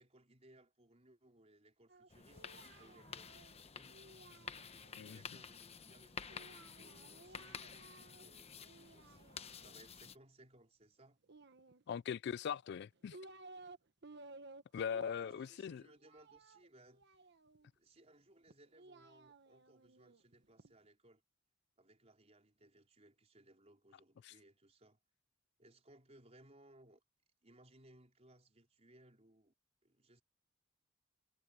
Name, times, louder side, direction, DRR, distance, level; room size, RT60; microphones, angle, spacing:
voice 1, 0.0-3.9 5.0-11.2 15.2-17.2 17.8-21.2 21.8-25.0 25.6-27.0 27.4-29.5 29.8-30.2, right 1 dB, 35° right, 4.4 m, -65 dB
Singing, 1.9-5.1 6.3-8.3 8.6-9.8 11.2-12.2 12.8-13.8 14.0-17.7 18.5-20.7, right 3 dB, 60° right, 1.3 m, -58 dB
sound 1, 2.1-10.2, left 6 dB, 30° left, 0.9 m, -51 dB
voice 2, 11.9-13.2 14.7-15.8 24.2-24.3, left 7 dB, 55° left, 0.3 m, -40 dB
head